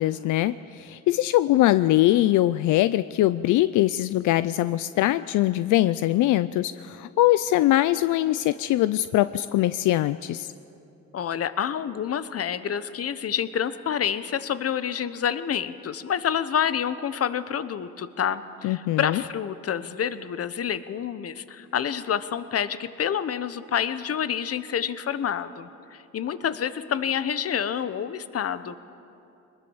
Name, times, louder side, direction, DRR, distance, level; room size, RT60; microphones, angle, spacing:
voice 1, 0.0-10.5 18.6-19.2, left 15 dB, 80° left, 14 dB, 0.5 m, -22 dB
voice 2, 11.1-28.8, left 8 dB, 50° left, 13 dB, 1.1 m, -28 dB
22.5 x 20.5 x 7.2 m, 2.7 s
cardioid pair, 90°, 30 cm